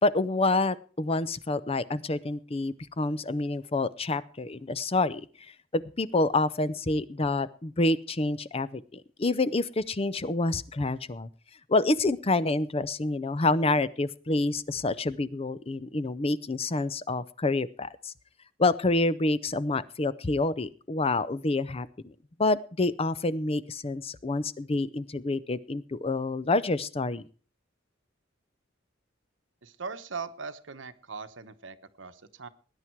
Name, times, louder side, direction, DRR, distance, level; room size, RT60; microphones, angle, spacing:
voice 1, 0.0-11.3 11.7-18.1 18.6-22.1 22.4-27.3, left 2 dB, 30° left, 16 dB, 0.6 m, -28 dB
voice 2, 29.6-32.5, right 5 dB, 85° right, 10 dB, 1.1 m, -40 dB
19.5 x 9.9 x 4.6 m, 0.40 s
head